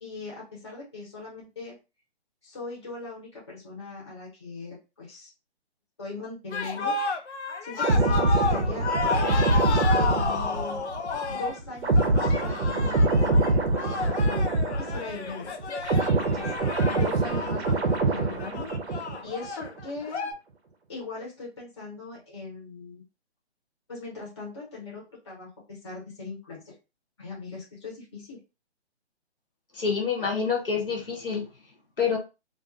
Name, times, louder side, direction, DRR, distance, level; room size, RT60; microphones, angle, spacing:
voice 1, 0.0-1.7 2.4-5.3 6.0-7.0 7.2-7.3 7.6-10.8 11.3-15.6 16.2-16.5 16.9-20.3 20.9-23.0 23.9-26.8 27.2-28.4, left 3 dB, 25° left, -5 dB, 0.8 m, -40 dB
sound 1, 6.5-20.3, left 4 dB, 85° left, 0.6 m, -31 dB
sound 2, 7.8-15.3 15.6-19.3 19.6-19.8, right 2 dB, 70° right, 0.7 m, -24 dB
voice 2, 29.7-31.5 32.0-32.2, left 6 dB, 55° left, 1 dB, 0.8 m, -27 dB
2.4 x 2.4 x 2.4 m, 0.28 s
hypercardioid pair, 175°, 33 cm